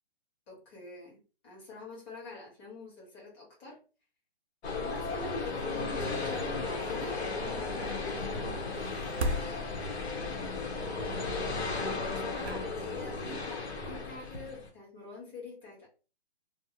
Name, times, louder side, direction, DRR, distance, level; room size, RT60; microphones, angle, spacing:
voice 1, 0.5-3.8 4.6-7.2 7.5-9.9 11.0-15.9, left 2 dB, 25° left, -4 dB, 1.3 m, -45 dB
sound 1, 4.6-14.7, left 3 dB, 80° left, 0.9 m, -35 dB
sound 2, 8.7-10.3 11.9-12.0 12.3-13.2 13.7-13.9, right 1 dB, 80° right, 0.6 m, -36 dB
2.6 x 2.0 x 2.8 m, 0.35 s
hypercardioid pair, 150°, 32 cm